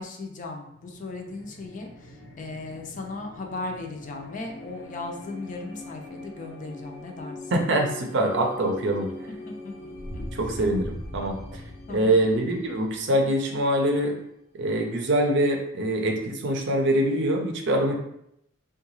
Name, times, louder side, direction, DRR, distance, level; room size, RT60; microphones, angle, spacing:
voice 1, 0.0-7.5 9.5-10.2 11.9-12.2, left 3 dB, 40° left, 2 dB, 0.5 m, -37 dB
sound 1, 0.8-14.2, left 1 dB, 90° left, 0.7 m, -41 dB
voice 2, 7.5-9.1 10.3-11.6 11.9-14.2 14.6-18.0, right 1 dB, 60° right, 3 dB, 0.6 m, -24 dB
3.7 x 2.3 x 3.0 m, 0.76 s
head